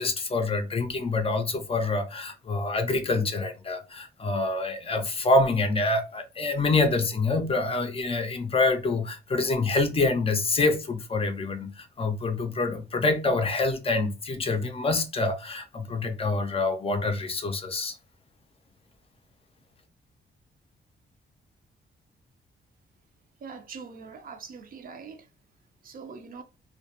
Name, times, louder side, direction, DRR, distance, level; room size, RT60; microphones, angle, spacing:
voice 1, 0.0-18.0, left 3 dB, 30° left, 0.4 m, -26 dB
voice 2, 23.4-25.3 25.8-26.4, right 5 dB, 50° right, 0.4 m, -42 dB
2.3 x 2.1 x 2.7 m
cardioid pair, 135°, 19 cm